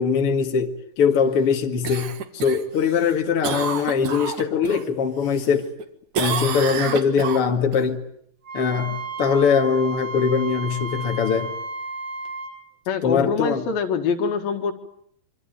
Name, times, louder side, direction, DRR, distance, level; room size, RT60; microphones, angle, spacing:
voice 1, 0.0-5.7 6.2-8.0 8.5-11.5 13.0-13.7, left 6 dB, 45° left, 2.7 m, -22 dB
Cough, 1.8-4.8 5.2-5.8 6.1-7.8 12.3-12.4, right 7 dB, 60° right, 3.1 m, -29 dB
Wind instrument woodwind instrument, 8.4-12.6, right 2 dB, 85° right, 9.4 m, -33 dB
voice 2, 12.9-14.7, left 5 dB, 85° left, 3.8 m, -24 dB
25.5 x 25.0 x 9.3 m
omnidirectional pair, 4.1 m